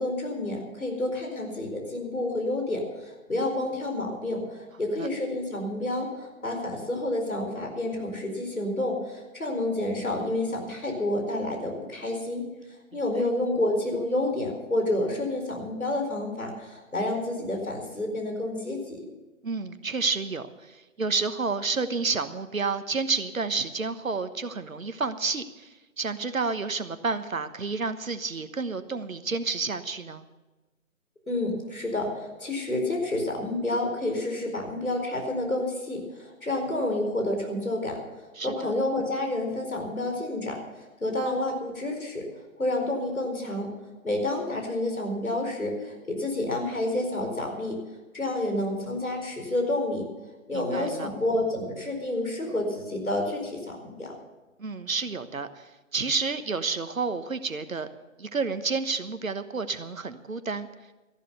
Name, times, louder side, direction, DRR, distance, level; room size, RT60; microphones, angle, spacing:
voice 1, 0.0-12.4 12.9-19.1 31.3-38.0 38.4-40.6 41.0-42.3 42.6-43.7 44.0-47.8 48.1-50.1 50.5-54.1, left 1 dB, 80° left, 2 dB, 4.5 m, -29 dB
voice 2, 19.4-25.7 26.0-30.2 38.4-38.7 50.5-51.1 54.6-57.9 58.2-60.7, right 4 dB, 70° right, 11 dB, 1.3 m, -30 dB
13.5 x 11.5 x 6.7 m, 1.1 s
figure-of-eight pair, 145°, 41 cm